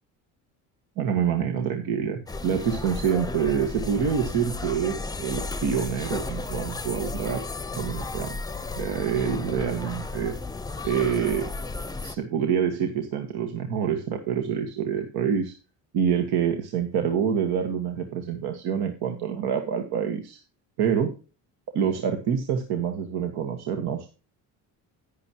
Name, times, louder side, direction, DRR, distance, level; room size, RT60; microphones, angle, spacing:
voice 1, 1.0-7.4 7.7-8.4 8.8-10.4 10.8-11.5 12.0-15.5 15.9-20.4 20.8-21.1 21.7-24.1, right 7 dB, 65° right, 5 dB, 1.7 m, -26 dB
sound 1, 2.3-12.2, left 3 dB, 10° left, 0.8 m, -34 dB
10.5 x 10.0 x 3.0 m, 0.33 s
supercardioid pair, 85°, 40 cm